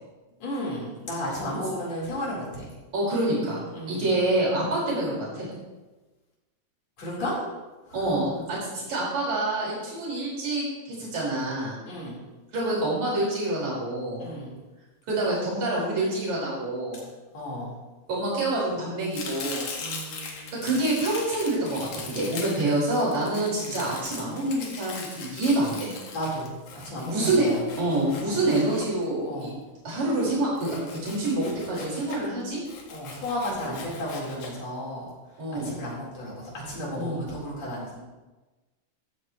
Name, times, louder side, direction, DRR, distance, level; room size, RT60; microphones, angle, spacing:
voice 1, 0.4-2.7 3.7-4.1 7.0-7.4 7.9-8.1 11.9-12.2 14.2-14.6 17.3-17.8 19.8-20.6 23.4-23.8 26.1-27.8 28.2-28.4 29.3-29.5 32.9-35.1 35.6-38.0, equal, 55° left, -5 dB, 5.3 m, -33 dB
voice 2, 2.9-5.5 7.9-11.8 12.5-14.2 15.1-17.0 18.1-19.6 20.6-25.9 27.0-27.5 27.8-29.5 29.8-32.6 35.4-35.7 37.0-37.2, right 2 dB, 65° right, -6 dB, 6.4 m, -27 dB
Domestic sounds home sounds, 19.1-29.4 30.6-32.3 32.7-34.5, left 4 dB, 75° left, 3.2 m, -40 dB
14.5 x 14.0 x 3.2 m, 1.2 s
omnidirectional pair, 3.5 m